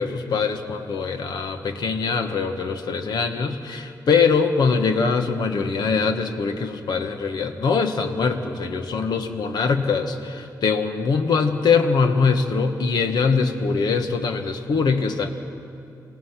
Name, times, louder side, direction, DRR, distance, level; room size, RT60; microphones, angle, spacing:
voice 1, 0.0-15.3, left 5 dB, 85° left, 6 dB, 1.4 m, -22 dB
27.0 x 17.5 x 5.9 m, 2.5 s
cardioid pair, 65°, 7 cm